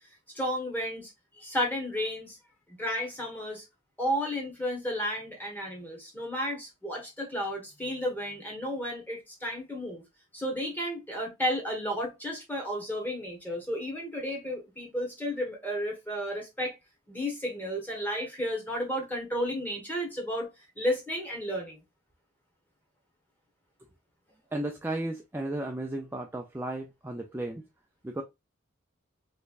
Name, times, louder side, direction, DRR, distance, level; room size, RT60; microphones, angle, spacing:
voice 1, 0.3-2.4 2.7-3.6 4.0-10.0 10.3-16.8 17.1-21.8, equal, 10° left, 1.2 m, -33 dB
voice 2, 24.5-27.6 28.0-28.2, right 1 dB, 10° right, 0.3 m, -34 dB
3.4 x 3.1 x 2.3 m
head